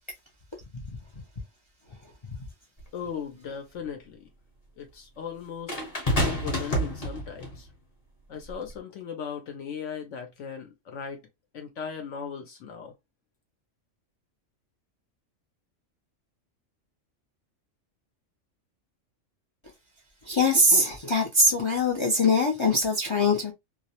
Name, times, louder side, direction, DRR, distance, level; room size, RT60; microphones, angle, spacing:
sound 1, 2.8-2.9 5.7-7.6 8.5-8.7, equal, 30° left, 0.9 m, -28 dB
voice 1, 2.9-4.3 4.8-5.8 6.2-7.7 8.3-11.2 11.5-12.9, left 7 dB, 70° left, 0.9 m, -37 dB
voice 2, 20.3-23.5, left 1 dB, 50° left, 0.3 m, -22 dB
2.4 x 2.0 x 2.7 m
omnidirectional pair, 1.3 m